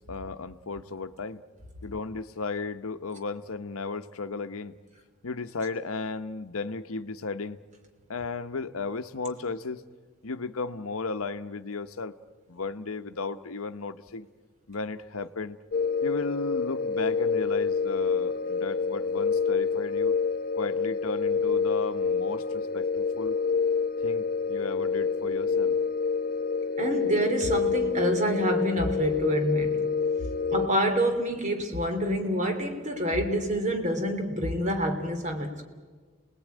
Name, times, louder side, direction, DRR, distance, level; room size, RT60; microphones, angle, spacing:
voice 1, 0.0-1.4 1.8-4.8 5.2-7.6 8.1-9.8 10.2-12.1 12.5-14.3 14.7-15.6 16.0-20.2 20.5-23.4 24.0-25.8, left 3 dB, 85° left, 9 dB, 0.9 m, -34 dB
sound 1, 15.7-30.7, left 5 dB, 45° left, 0.7 m, -27 dB
voice 2, 26.8-29.8 30.5-35.7, equal, 35° right, 5 dB, 2.6 m, -27 dB
29.0 x 19.5 x 9.2 m, 1.5 s
head